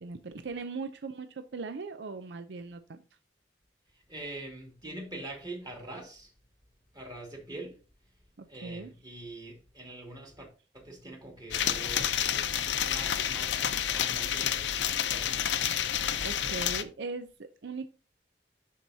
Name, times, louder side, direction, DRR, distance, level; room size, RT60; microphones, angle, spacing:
voice 1, 0.0-3.0 8.4-8.9 16.2-17.9, right 4 dB, 70° right, 0.6 m, -39 dB
voice 2, 3.9-6.3 6.9-7.8 8.5-10.5 10.7-14.8 15.1-15.7, right 2 dB, 25° right, 2.6 m, -44 dB
sound 1, 11.5-16.8, left 9 dB, 85° left, 0.6 m, -29 dB
11.5 x 4.6 x 2.8 m
head